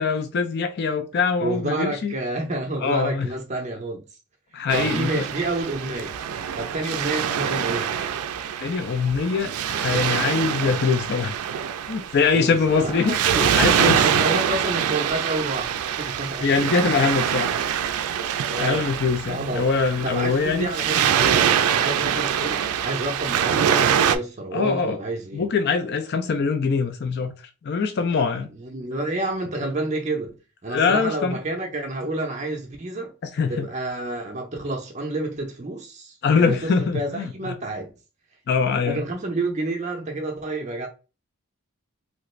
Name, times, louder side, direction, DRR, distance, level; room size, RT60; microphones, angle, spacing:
voice 1, 0.0-2.1 2.8-3.3 4.5-5.2 8.6-11.4 11.9-13.1 13.5-14.0 16.4-17.5 18.6-20.7 24.5-25.0 25.3-27.3 27.6-28.5 30.7-31.4 33.3-33.7 36.2-37.3 38.5-39.0, left 5 dB, 50° left, 0.3 m, -23 dB
voice 2, 1.4-4.2 4.7-6.2 6.6-7.9 12.3-16.8 18.5-18.9 19.3-19.7 20.0-25.5 28.5-33.1 33.5-37.9 38.9-40.9, right 2 dB, 30° right, 0.5 m, -29 dB
Waves surf, 4.7-24.2, right 8 dB, 90° right, 0.3 m, -24 dB
3.0 x 2.4 x 3.1 m
head